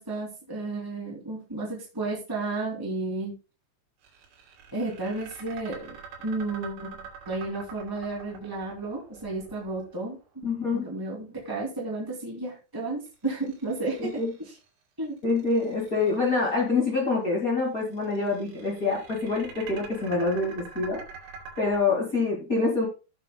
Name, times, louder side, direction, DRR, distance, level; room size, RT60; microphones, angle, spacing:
voice 1, 0.0-3.4 4.7-7.0 7.3-10.4 10.7-14.5 15.0-15.1, right 2 dB, 10° right, -3 dB, 1.3 m, -33 dB
sound 1, 4.0-10.2 13.1-14.6 15.2-16.5 17.8-21.8, right 5 dB, 85° right, 5.3 m, -45 dB
voice 2, 10.4-10.8 14.0-14.3 15.2-21.0 21.6-22.9, left 3 dB, 55° left, -2 dB, 0.9 m, -26 dB
16.5 x 7.5 x 2.2 m, 0.31 s
omnidirectional pair, 5.4 m